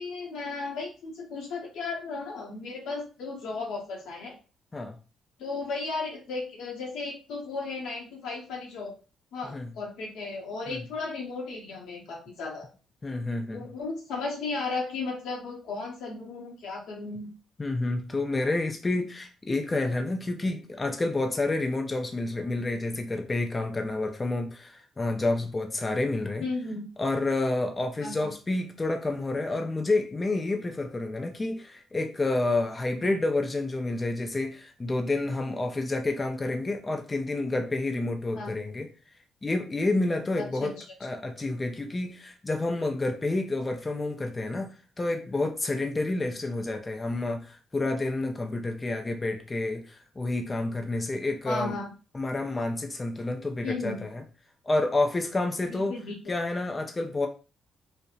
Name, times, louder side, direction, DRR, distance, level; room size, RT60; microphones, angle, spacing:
voice 1, 0.0-4.4 5.4-8.9 9.3-12.7 13.5-17.3 26.4-26.8 28.0-28.3 38.4-38.5 40.4-40.8 51.4-51.9 53.6-54.1 55.6-56.1, left 3 dB, 85° left, 0.8 m, -35 dB
voice 2, 13.0-13.7 17.6-26.4 27.0-38.9 39.4-40.7 41.0-51.7 52.1-54.2 54.6-55.9 56.3-57.3, left 2 dB, 25° left, 0.3 m, -29 dB
2.6 x 2.0 x 2.3 m
cardioid pair, 90°, 0 cm